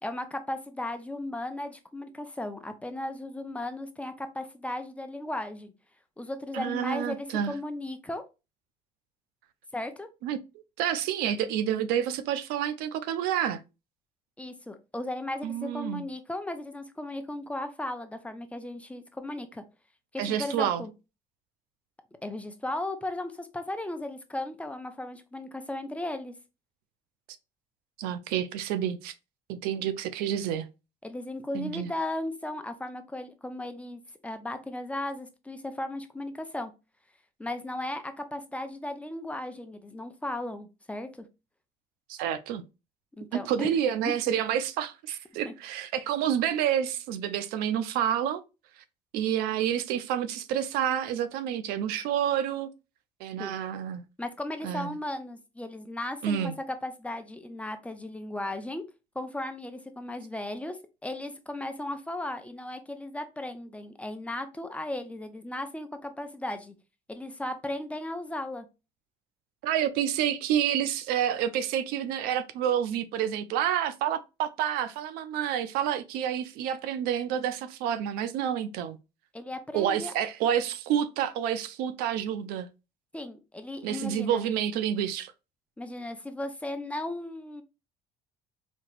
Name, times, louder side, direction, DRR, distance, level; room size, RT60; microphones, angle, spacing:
voice 1, 0.0-5.7 6.2-8.2 9.7-10.1 14.4-19.6 20.1-20.9 22.2-26.3 31.0-36.7 37.4-41.1 43.2-43.7 44.0-44.1 45.4-45.5 53.4-53.5 54.2-58.9 59.1-66.7 67.1-68.7 79.3-80.1 83.1-84.5 85.8-87.6, left 1 dB, 10° left, 0.5 m, -36 dB
voice 2, 6.5-7.5 10.2-10.4 10.8-13.6 15.4-16.0 20.2-20.8 28.0-29.1 29.5-30.7 31.5-31.9 42.1-42.6 43.3-48.4 49.1-52.7 53.2-54.0 54.6-55.0 56.2-56.6 69.6-79.0 79.7-82.7 83.8-85.3, right 10 dB, 80° right, 0.5 m, -29 dB
4.3 x 2.9 x 2.4 m
cardioid pair, 110°, 16 cm